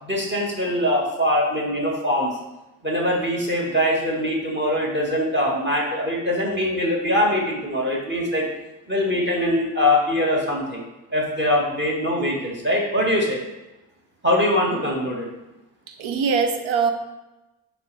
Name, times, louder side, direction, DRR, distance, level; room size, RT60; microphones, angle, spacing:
voice 1, 0.0-2.3 2.8-8.4 8.9-10.8 11.1-13.4 14.2-15.3, left 1 dB, 25° right, -2 dB, 1.8 m, -22 dB
voice 2, 15.9-16.9, right 5 dB, 80° right, 7 dB, 0.8 m, -22 dB
9.1 x 3.3 x 3.4 m, 1.0 s
supercardioid pair, 50°, 47 cm